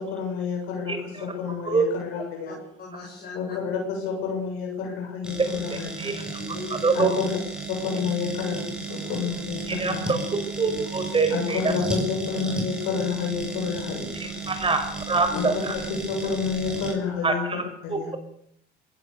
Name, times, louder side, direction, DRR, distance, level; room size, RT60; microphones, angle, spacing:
voice 1, 0.0-2.6 3.3-6.1 6.9-7.4 7.7-8.6 8.9-10.3 11.3-12.0 12.3-14.4 15.3-15.4 16.1-17.4 17.8-18.1, left 6 dB, 85° left, 1 dB, 7.6 m, -29 dB
voice 2, 2.5-3.5 6.4-7.0 10.7-11.2 15.3-15.5, left 4 dB, 50° left, -2 dB, 7.7 m, -39 dB
sound 1, 5.2-16.9, right 3 dB, 5° right, 6.4 m, -34 dB
voice 3, 6.8-7.1 9.7-10.2 10.6-11.7 14.2-15.7 17.2-17.6 17.9-18.0, right 4 dB, 25° right, 7 dB, 5.5 m, -24 dB
21.5 x 17.5 x 6.9 m, 0.68 s
cardioid pair, 95°, 20 cm